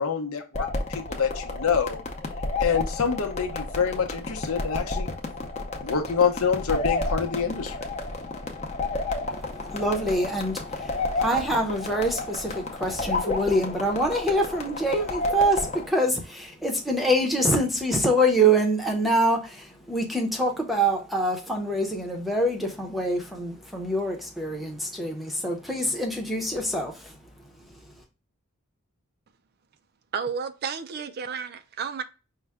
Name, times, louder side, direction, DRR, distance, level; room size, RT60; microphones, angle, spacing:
voice 1, 0.0-2.0 2.6-5.1 5.8-7.7, left 6 dB, 75° left, 0.8 m, -26 dB
sound 1, 0.5-15.9, left 3 dB, 30° left, 0.7 m, -31 dB
voice 2, 9.3-27.1, right 1 dB, ahead, 0.7 m, -25 dB
voice 3, 30.1-32.0, right 6 dB, 45° right, 0.4 m, -32 dB
5.5 x 2.2 x 3.5 m
head